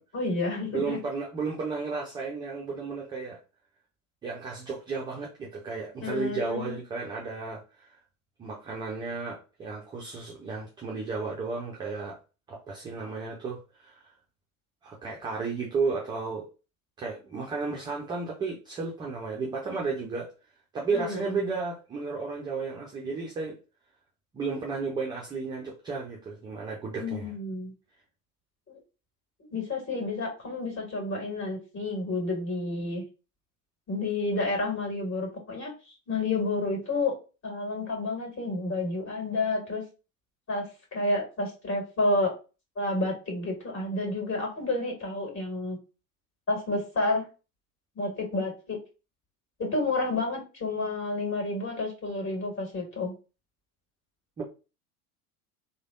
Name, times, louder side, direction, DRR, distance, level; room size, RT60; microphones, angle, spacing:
voice 1, 0.1-1.0 6.0-6.8 20.9-21.4 27.0-27.7 28.7-28.8 29.5-33.0 33.9-37.1 37.4-39.8 40.5-42.3 42.8-45.8 46.5-47.3 48.0-48.8 49.6-53.1, left 2 dB, 25° left, 2.0 m, -30 dB
voice 2, 0.7-3.4 4.2-8.0 8.4-12.2 12.5-14.1 14.8-16.5 17.0-20.3 20.7-23.6 24.3-27.3 54.4-54.5, right 4 dB, 10° right, 0.4 m, -33 dB
3.2 x 2.2 x 3.6 m
figure-of-eight pair, 80°, 46 cm